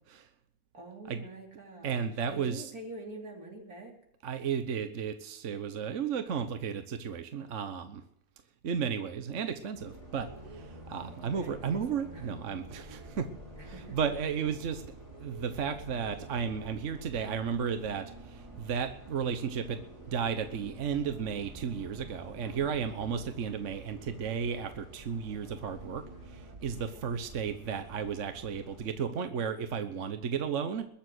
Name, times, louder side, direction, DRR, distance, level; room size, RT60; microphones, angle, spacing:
voice 1, 0.7-4.0 11.3-12.3 13.6-14.0, right 2 dB, 85° right, 2 dB, 3.7 m, -46 dB
voice 2, 1.8-2.7 4.2-8.0 8.6-13.3 13.9-14.8 15.2-30.9, right 7 dB, 60° right, 9 dB, 1.3 m, -34 dB
Bus, 9.7-28.9, right 2 dB, 20° right, 4.9 m, -48 dB
21.5 x 7.4 x 7.9 m, 0.76 s
omnidirectional pair, 1.5 m